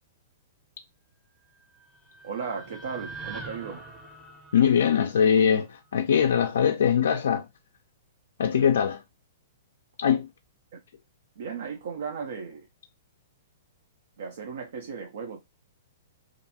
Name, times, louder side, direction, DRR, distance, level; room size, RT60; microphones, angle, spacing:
sound 1, 1.6-5.8, right 3 dB, 5° right, 0.6 m, -44 dB
voice 1, 2.2-3.8 8.6-8.7 10.7-10.8 11.4-12.7 14.2-15.4, right 6 dB, 70° right, 0.5 m, -36 dB
voice 2, 4.5-7.4 8.4-9.0 10.0-10.3, left 8 dB, 80° left, 0.3 m, -22 dB
2.5 x 2.2 x 2.7 m
hypercardioid pair, 140°, 0 cm